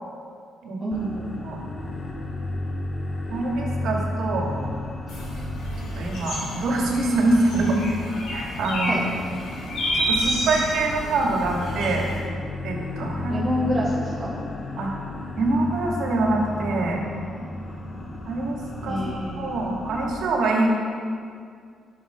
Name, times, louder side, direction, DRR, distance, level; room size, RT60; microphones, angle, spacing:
voice 1, 0.8-1.4 8.9-9.0 13.3-14.4 18.9-19.5, equal, 30° right, -8 dB, 2.4 m, -27 dB
sound 1, 0.9-20.1, left 1 dB, 30° left, 1.2 m, -33 dB
voice 2, 3.3-4.5 5.9-7.8 8.3-9.0 9.9-12.1 12.6-13.5 14.8-14.9 15.4-17.0 18.3-18.6 18.8-19.0 19.4-20.7, right 2 dB, 75° right, 0 dB, 2.1 m, -24 dB
sound 2, 5.1-12.2, equal, 80° left, 2.9 m, -30 dB
11.5 x 6.6 x 5.8 m, 2.2 s
cardioid pair, 90°, 0 cm